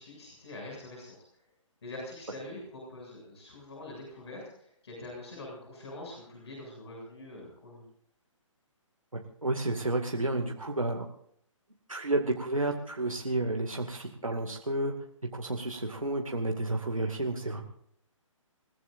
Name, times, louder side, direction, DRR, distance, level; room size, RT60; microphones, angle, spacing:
voice 1, 0.0-1.4 1.8-7.9, left 2 dB, 55° left, -1 dB, 7.4 m, -44 dB
voice 2, 9.1-11.1 11.9-14.9 15.3-17.6, right 2 dB, 85° right, 2 dB, 2.2 m, -31 dB
28.5 x 16.0 x 2.6 m, 0.68 s
figure-of-eight pair, 135°, 17 cm